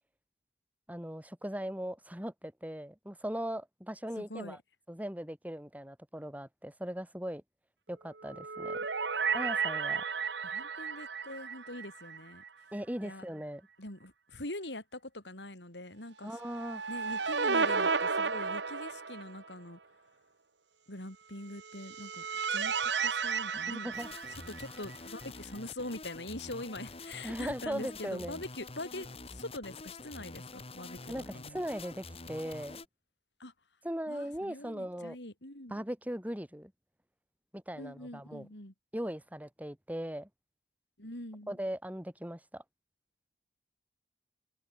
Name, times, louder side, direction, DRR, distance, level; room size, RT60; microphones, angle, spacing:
voice 1, 0.9-4.6 4.9-7.4 7.9-8.9 9.3-10.0 12.7-13.7 16.2-16.8 23.5-24.1 27.2-28.4 31.1-32.8 33.8-35.2 35.7-36.7 37.5-38.5 38.9-40.3 41.5-42.6, equal, 10° right, 6.3 m, -39 dB
voice 2, 4.2-4.6 10.4-12.4 13.0-13.3 13.8-16.4 16.9-19.8 20.9-22.3 22.5-23.9 24.3-31.6 33.4-33.5 34.1-35.8 37.8-38.7 41.0-41.6, left 1 dB, 75° left, 7.2 m, -43 dB
sound 1, 8.2-12.5 12.8-12.9 16.4-19.5 21.6-25.0, right 5 dB, 85° right, 1.8 m, -33 dB
sound 2, 23.9-32.8, left 3 dB, 35° left, 2.3 m, -47 dB
head